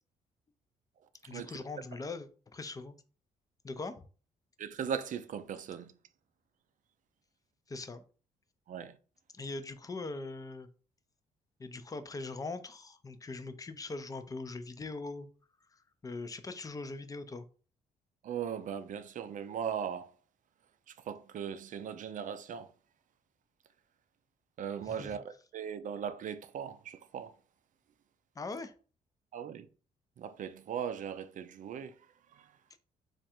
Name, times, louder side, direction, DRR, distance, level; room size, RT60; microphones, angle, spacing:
voice 1, 1.2-3.0 3.6-4.0 7.7-8.0 9.3-10.7 11.6-15.3 15.7-17.4 24.8-25.2 28.4-28.7, left 3 dB, 20° left, 0.5 m, -41 dB
voice 2, 4.6-5.9 8.7-9.0 18.2-20.1 21.1-22.7 24.6-27.3 29.3-29.7 30.2-31.9 32.3-32.5, right 8 dB, 55° right, 0.5 m, -38 dB
3.2 x 2.5 x 4.3 m
cardioid pair, 80°, 16 cm